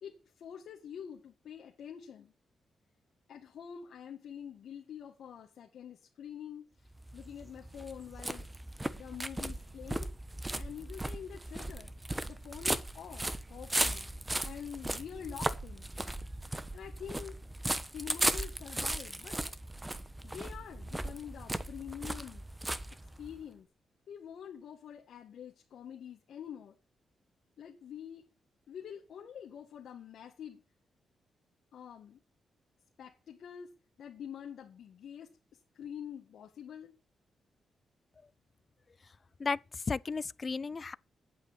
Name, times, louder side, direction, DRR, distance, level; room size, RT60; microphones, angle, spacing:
voice 1, 0.0-2.3 3.3-6.7 7.1-8.5 8.9-10.1 10.5-11.9 12.2-14.1 14.4-15.9 16.7-17.4 17.9-19.4 20.2-22.4 23.2-23.7 24.1-26.7 27.6-28.2 28.7-30.6 31.7-32.2 33.0-33.7 34.0-35.3 35.7-36.9, left 8 dB, 75° left, 1.7 m, -46 dB
sound 1, 6.9-23.4, right 1 dB, 15° right, 1.1 m, -37 dB
voice 2, 39.4-41.0, left 4 dB, 40° left, 0.5 m, -34 dB
8.9 x 8.0 x 8.2 m
cardioid pair, 75°, 0 cm